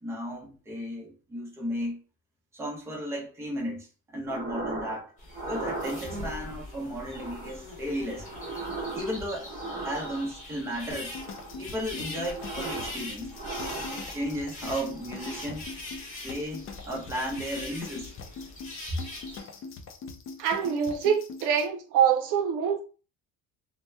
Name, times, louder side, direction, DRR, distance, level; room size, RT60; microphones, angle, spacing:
voice 1, 0.0-2.0 2.5-5.1 5.4-8.3 8.9-9.5 9.8-11.2 11.6-13.4 13.9-15.7 16.2-18.1 19.3-19.6, equal, 10° right, 0.7 m, -34 dB
sound 1, 4.3-5.0 5.3-6.4 7.0-7.6 8.0-10.5 11.0-11.6 12.0-13.0 13.3-14.5 14.9-15.6, right 3 dB, 30° right, 1.0 m, -38 dB
sound 2, 5.2-19.4, left 2 dB, 25° left, 0.9 m, -42 dB
sound 3, 10.9-21.7, left 4 dB, 40° left, 0.4 m, -42 dB
voice 2, 20.4-22.8, right 8 dB, 70° right, 0.6 m, -25 dB
2.8 x 2.1 x 3.3 m
cardioid pair, 160°, 32 cm